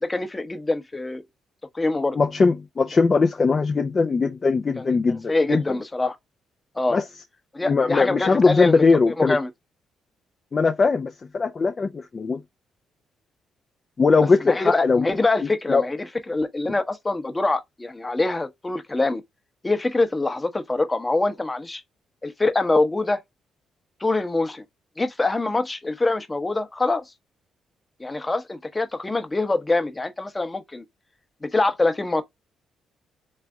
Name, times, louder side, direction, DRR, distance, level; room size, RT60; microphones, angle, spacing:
voice 1, 0.0-1.2 1.7-2.2 4.8-6.2 6.8-7.0 7.5-8.8 9.2-9.5 14.4-19.2 19.6-21.8 22.2-23.2 24.0-24.6 25.0-27.0 28.0-30.8 31.4-32.2, left 2 dB, 20° left, 0.8 m, -24 dB
voice 2, 2.2-5.6 6.9-7.0 7.6-9.4 10.5-12.4 14.0-15.1 15.7-15.8, left 4 dB, 35° left, 0.4 m, -20 dB
3.4 x 3.2 x 3.5 m
cardioid pair, 90°, 0 cm